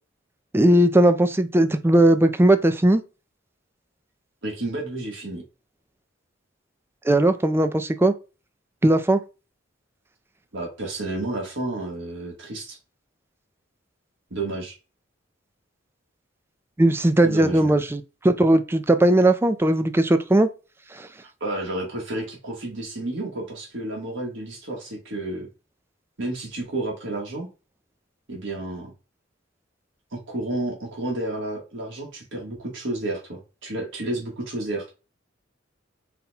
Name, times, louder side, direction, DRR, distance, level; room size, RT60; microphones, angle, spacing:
voice 1, 0.5-3.0 7.0-8.1 8.8-9.2 16.8-20.5 20.9-21.1, right 1 dB, 10° right, 0.4 m, -18 dB
voice 2, 4.4-5.4 10.5-12.8 14.3-14.7 17.2-17.8 21.4-25.5 26.2-27.5 28.3-28.9 30.1-34.9, right 2 dB, 70° right, 1.4 m, -31 dB
4.2 x 2.2 x 4.0 m
head